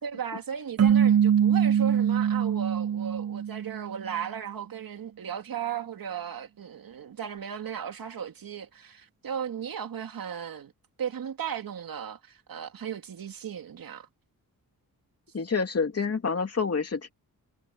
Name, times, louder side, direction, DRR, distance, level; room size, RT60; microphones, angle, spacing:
voice 1, 0.0-10.7 11.0-14.1, right 8 dB, 70° right, 2.6 m, -36 dB
sound 1, 0.8-4.1, right 8 dB, 40° right, 0.7 m, -23 dB
voice 2, 15.3-17.1, left 5 dB, 40° left, 2.9 m, -28 dB
wide cardioid pair, 115°, 36 cm